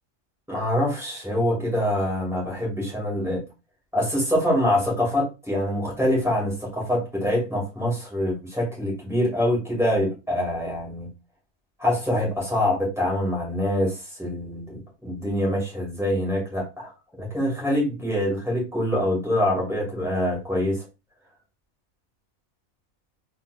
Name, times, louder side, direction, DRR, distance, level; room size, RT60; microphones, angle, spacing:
voice 1, 0.5-3.4 3.9-11.1 11.8-16.9 17.2-20.9, left 1 dB, ahead, -4 dB, 2.1 m, -25 dB
4.2 x 3.9 x 2.4 m, 0.27 s
omnidirectional pair, 1.5 m